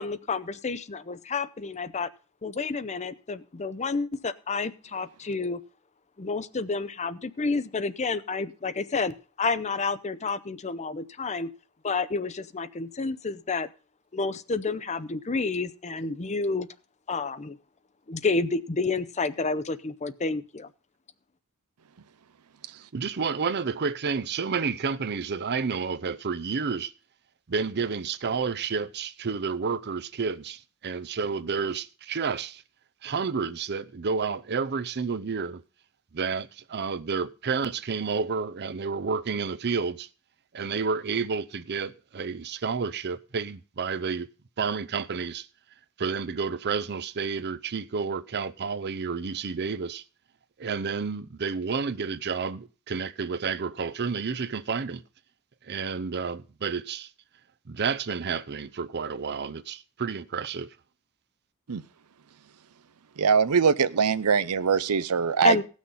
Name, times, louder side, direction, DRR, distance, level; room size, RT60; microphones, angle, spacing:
voice 1, 0.0-2.1 2.4-5.6 6.2-11.5 11.8-13.7 14.1-16.7 17.1-17.6 18.1-20.7 65.4-65.6, left 4 dB, 30° left, 0.6 m, -30 dB
voice 2, 22.9-26.9 27.5-32.6 33.0-35.6 36.1-40.1 40.5-44.3 44.6-45.5 46.0-50.0 50.6-55.0 55.6-57.1 57.7-60.7, right 5 dB, 50° right, 0.6 m, -30 dB
voice 3, 63.2-65.6, right 6 dB, 90° right, 0.6 m, -22 dB
17.0 x 6.3 x 5.5 m
head